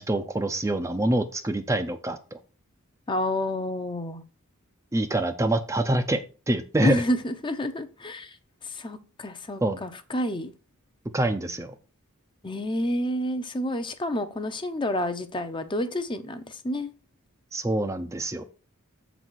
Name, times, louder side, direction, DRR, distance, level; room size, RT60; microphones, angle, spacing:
voice 1, 0.0-2.4 4.9-6.2 6.5-7.0 9.6-9.8 11.1-11.7 17.5-18.4, right 1 dB, 15° right, 0.5 m, -25 dB
voice 2, 3.1-4.2 6.8-8.4 8.6-10.5 12.4-16.9, left 1 dB, 25° left, 0.7 m, -29 dB
7.3 x 4.0 x 6.0 m
head